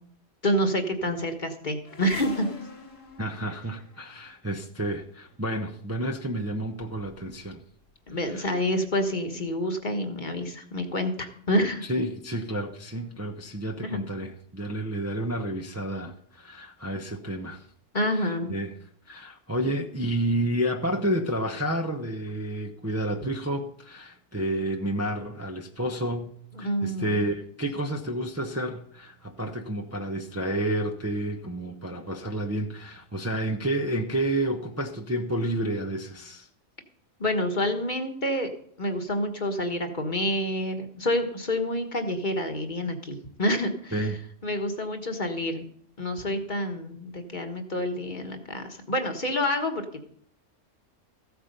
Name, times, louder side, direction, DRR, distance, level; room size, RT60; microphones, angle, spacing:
voice 1, 0.4-2.5 8.1-11.8 13.8-14.0 17.9-18.5 26.6-27.2 37.2-38.5 38.8-44.1 44.4-45.6 46.0-50.0, left 1 dB, 40° left, 1.4 m, -28 dB
sound 1, 1.8-4.3 5.3-5.5 6.3-6.4 6.6-7.5 7.8-8.4 9.1-9.2 9.5-9.6, left 3 dB, 80° left, 2.1 m, -43 dB
voice 2, 3.2-7.6 8.3-8.6 11.8-17.7 18.1-18.7 19.0-36.5 43.9-44.2, right 1 dB, 15° right, 0.7 m, -30 dB
15.0 x 8.2 x 5.3 m
omnidirectional pair, 1.3 m